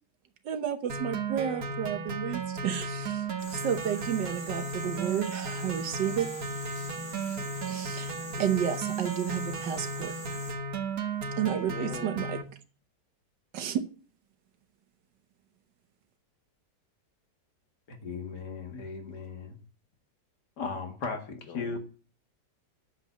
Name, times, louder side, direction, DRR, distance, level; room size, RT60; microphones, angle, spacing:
voice 1, 0.4-6.3 7.7-10.1 11.4-12.4 13.5-13.8, right 9 dB, 80° right, 8 dB, 1.6 m, -31 dB
sound 1, 0.9-12.4, right 3 dB, 55° right, 2.0 m, -35 dB
sound 2, 3.4-10.5, left 1 dB, 35° left, 3.7 m, -45 dB
voice 2, 11.5-12.1 21.5-21.8, left 6 dB, 85° left, 7 dB, 1.8 m, -41 dB
voice 3, 17.9-19.6 20.6-21.8, left 4 dB, 70° left, 5 dB, 2.4 m, -37 dB
9.6 x 7.5 x 7.0 m, 0.40 s
omnidirectional pair, 1.9 m